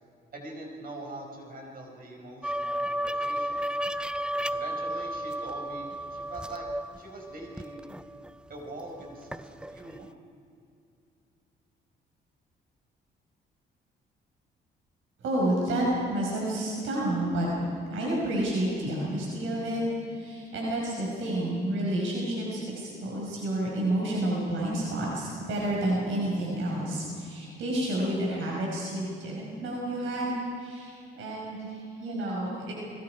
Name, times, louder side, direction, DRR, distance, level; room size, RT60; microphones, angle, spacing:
voice 1, 0.3-3.7 4.5-6.7 7.0-7.8 8.5-10.2, right 1 dB, 45° right, 1 dB, 5.4 m, -43 dB
sound 1, 2.4-8.7 9.0-10.0, right 1 dB, 5° right, 0.5 m, -33 dB
voice 2, 15.2-17.5 17.9-19.8 20.1-30.3 30.6-32.7, right 1 dB, 80° right, -3 dB, 5.5 m, -30 dB
29.5 x 21.5 x 4.9 m, 2.5 s
cardioid pair, 90°, 20 cm